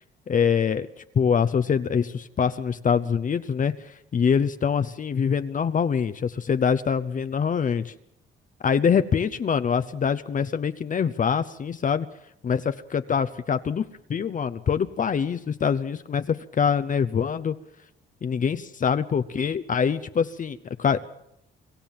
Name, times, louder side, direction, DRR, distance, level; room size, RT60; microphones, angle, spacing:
voice 1, 0.3-0.9 1.1-7.9 8.6-12.1 12.4-13.8 14.1-17.6 18.2-21.0, left 6 dB, 40° left, 10 dB, 0.8 m, -24 dB
25.0 x 14.5 x 7.5 m, 0.77 s
cardioid pair, 90°, 20 cm